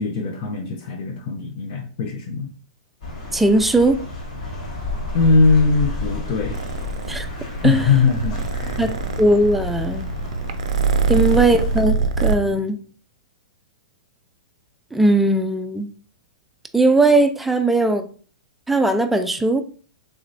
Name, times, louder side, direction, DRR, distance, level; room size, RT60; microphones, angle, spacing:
voice 1, 0.0-2.5 5.1-6.6 7.6-8.8 11.1-11.3 12.4-12.6, left 4 dB, 50° left, 2 dB, 0.6 m, -20 dB
sound 1, 3.0-11.8, left 2 dB, 65° left, 1.4 m, -31 dB
voice 2, 3.3-4.0 7.1-7.3 7.6-7.9 8.8-10.1 11.1-12.8 14.9-15.9 16.7-18.1 18.7-19.6, right 2 dB, 5° right, 6 dB, 0.3 m, -18 dB
Purr, 6.5-12.4, right 4 dB, 70° right, 0.4 m, -24 dB
3.3 x 2.9 x 2.5 m, 0.42 s
hypercardioid pair, 120°, 4 cm